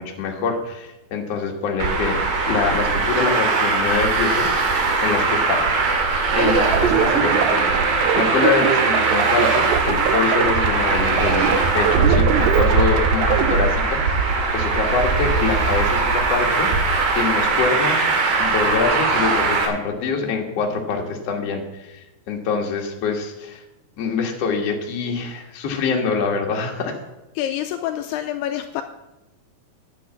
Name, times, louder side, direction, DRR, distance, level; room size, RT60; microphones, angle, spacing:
voice 1, 0.0-4.5 5.0-5.6 6.3-16.7 17.1-18.1 18.4-23.6 24.0-27.0, left 5 dB, 50° left, 1 dB, 2.0 m, -25 dB
Traffic noise roadway noise, 1.8-19.7, right 4 dB, 60° right, 3.3 m, -20 dB
sound 1, 6.3-13.7, right 9 dB, 85° right, 2.9 m, -23 dB
voice 2, 27.4-28.8, left 11 dB, 85° left, 6 dB, 2.5 m, -27 dB
10.5 x 8.6 x 7.3 m, 0.98 s
omnidirectional pair, 4.9 m